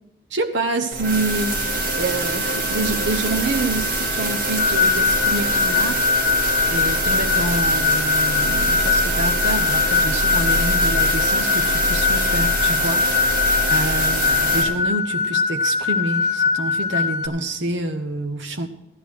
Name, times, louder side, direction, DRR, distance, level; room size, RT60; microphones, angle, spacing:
voice 1, 0.3-1.7 2.0-6.1 6.7-18.7, right 2 dB, 75° right, 5 dB, 0.9 m, -27 dB
sound 1, 0.9-14.6, right 1 dB, 45° right, 2.8 m, -24 dB
sound 2, 4.6-17.3, left 5 dB, 40° left, 1.1 m, -21 dB
15.0 x 10.5 x 4.5 m, 0.91 s
head